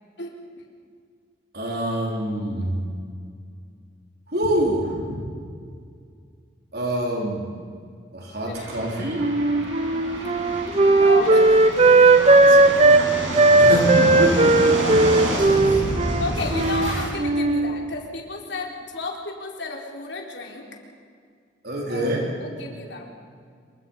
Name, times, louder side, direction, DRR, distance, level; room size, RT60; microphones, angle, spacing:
voice 1, 1.5-2.8 4.3-5.2 6.7-7.5 8.1-9.3 13.6-15.3 21.6-22.3, right 1 dB, 55° right, -1 dB, 4.1 m, -25 dB
voice 2, 8.2-8.7 10.8-11.5 12.2-13.1 14.8-15.2 15.5-20.7 21.9-22.1 22.4-23.0, left 3 dB, 65° left, 0 dB, 4.2 m, -33 dB
sound 1, 8.5-17.1, right 1 dB, 85° right, 6.7 m, -29 dB
Wind instrument woodwind instrument, 9.2-13.0 13.3-16.9 17.2-17.7, right 2 dB, 35° right, 1.0 m, -16 dB
27.0 x 24.0 x 5.6 m, 2.2 s
head